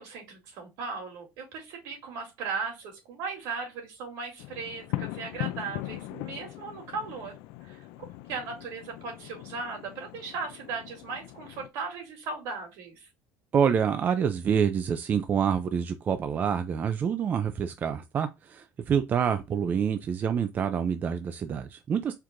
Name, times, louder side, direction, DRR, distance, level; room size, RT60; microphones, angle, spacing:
voice 1, 0.0-7.4 7.6-7.8 8.3-13.1, right 4 dB, 75° right, 2.6 m, -37 dB
sound 1, 4.4-11.7, left 16 dB, 85° left, 0.4 m, -40 dB
voice 2, 13.5-22.1, right 7 dB, 30° right, 0.4 m, -27 dB
4.6 x 2.5 x 3.6 m
cardioid pair, 145°, 6 cm